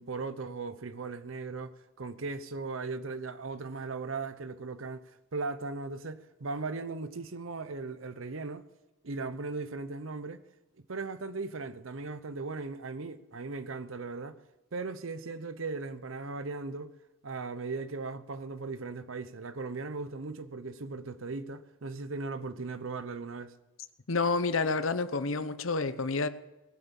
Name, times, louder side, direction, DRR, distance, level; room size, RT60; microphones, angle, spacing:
voice 1, 0.0-8.6 9.0-10.4 10.9-14.4 14.7-16.9 17.2-23.5, right 3 dB, 80° right, 0.8 m, -38 dB
voice 2, 24.1-26.3, left 3 dB, 80° left, 0.9 m, -29 dB
19.5 x 8.2 x 7.1 m
head